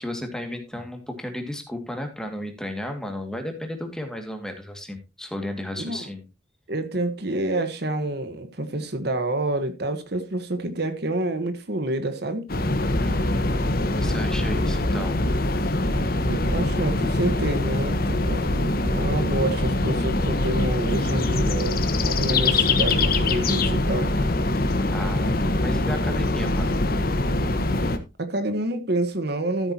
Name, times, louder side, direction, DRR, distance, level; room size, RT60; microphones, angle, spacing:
voice 1, 0.0-6.2 12.9-15.2 24.9-26.7, left 1 dB, 5° left, 2.1 m, -34 dB
voice 2, 5.8-6.1 6.7-12.5 16.2-24.1 28.2-29.7, right 1 dB, 60° right, 1.4 m, -28 dB
sound 1, 12.5-28.0, left 2 dB, 55° left, 1.3 m, -23 dB
13.5 x 8.8 x 2.9 m
head